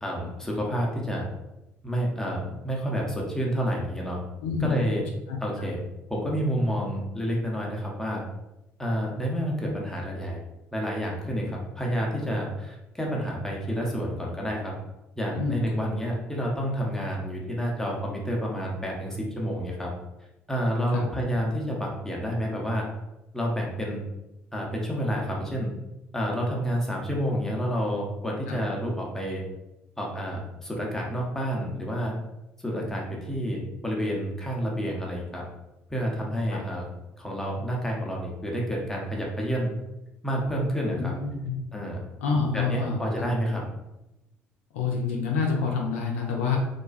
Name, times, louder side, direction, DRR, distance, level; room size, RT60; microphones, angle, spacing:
voice 1, 0.0-1.2 1.8-4.2 4.6-5.0 5.4-5.8 6.1-8.2 8.8-10.4 10.7-14.7 15.2-19.9 20.5-22.9 23.3-24.0 24.5-25.7 26.1-29.4 30.0-32.1 32.6-35.4 35.9-36.9 37.2-39.7 40.2-41.1 41.7-42.0 42.5-43.6, equal, 5° left, -2 dB, 0.7 m, -29 dB
voice 2, 4.4-4.9 5.3-5.7 15.3-15.6 20.9-21.0 28.5-28.6 36.5-36.6 40.9-41.6 42.2-43.3 44.7-46.6, left 5 dB, 75° left, -1 dB, 0.4 m, -28 dB
2.4 x 2.2 x 2.4 m, 0.94 s
figure-of-eight pair, 50°, 7 cm